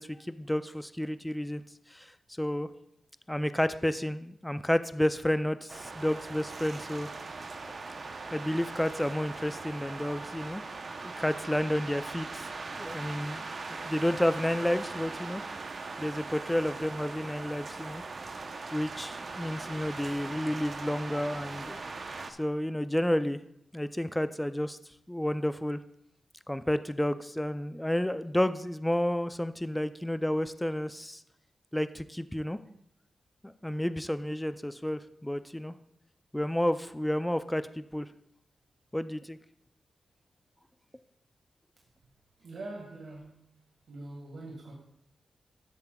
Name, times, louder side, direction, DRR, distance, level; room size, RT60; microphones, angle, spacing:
voice 1, 0.0-1.6 1.9-2.1 2.4-2.7 3.3-7.1 8.3-10.6 11.0-12.4 12.7-15.4 16.0-18.0 18.7-21.8 22.4-23.4 23.7-24.8 25.1-25.8 26.5-31.2 31.7-32.6 33.4-35.7 36.3-38.1 38.9-39.4, left 1 dB, 5° left, 12 dB, 0.4 m, -31 dB
sound 1, 5.7-22.3, right 3 dB, 50° right, 0.7 m, -40 dB
voice 2, 42.4-43.4 43.9-44.7, right 2 dB, 70° right, -2 dB, 1.7 m, -43 dB
13.0 x 7.6 x 2.3 m, 0.76 s
wide cardioid pair, 100°, 0 cm